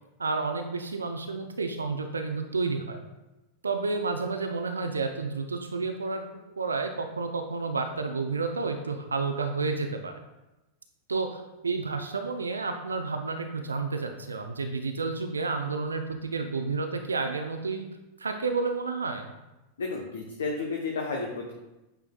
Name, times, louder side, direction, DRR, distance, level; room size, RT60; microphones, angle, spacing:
voice 1, 0.2-3.0 3.6-6.2 6.6-10.1 11.1-17.9 18.2-19.3, right 4 dB, 75° right, 6 dB, 0.5 m, -30 dB
voice 2, 19.8-21.5, left 3 dB, 65° left, 0 dB, 0.8 m, -32 dB
8.9 x 4.7 x 2.3 m, 1.0 s
figure-of-eight pair, 90°, 0 cm